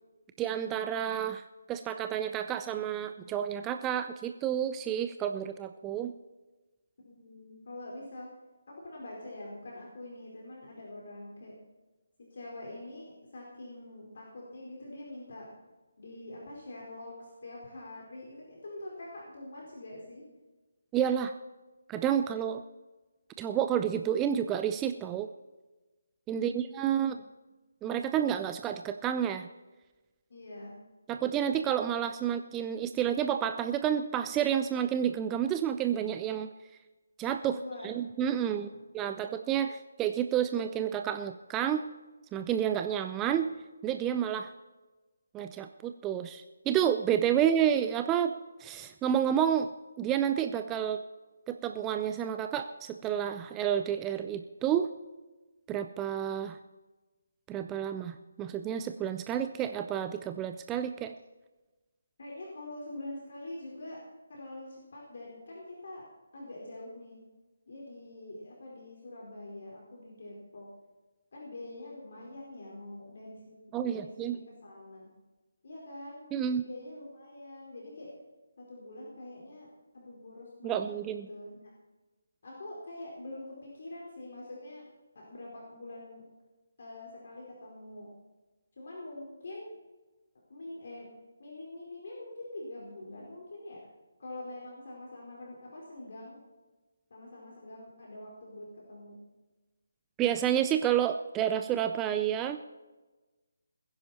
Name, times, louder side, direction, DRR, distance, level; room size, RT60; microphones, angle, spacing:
voice 1, 0.4-6.1 20.9-21.3 21.9-22.6 23.4-25.3 26.3-27.2 27.8-29.5 31.1-36.5 37.2-37.6 37.8-38.7 38.9-41.8 42.3-43.5 43.8-44.5 45.3-48.3 48.6-49.7 50.0-51.0 51.5-54.9 55.7-56.6 57.5-61.1 73.7-74.4 76.3-76.6 80.6-81.3 100.2-102.6, right 9 dB, 15° right, 8 dB, 0.5 m, -30 dB
voice 2, 7.0-8.3 8.7-11.5 12.2-15.5 16.0-20.2 26.3-27.1 30.3-30.8 37.5-37.9 38.3-38.8 62.2-64.0 64.3-66.1 66.3-67.2 67.7-70.7 71.3-73.6 73.8-75.1 75.6-76.3 76.6-78.1 78.6-81.7 82.4-84.8 85.1-86.2 86.8-88.1 88.8-89.8 90.5-91.1 91.4-93.8 94.2-96.4 97.1-99.2, left 1 dB, 55° left, -3 dB, 4.7 m, -45 dB
20.5 x 10.5 x 4.3 m, 1.2 s
figure-of-eight pair, 150°, 0 cm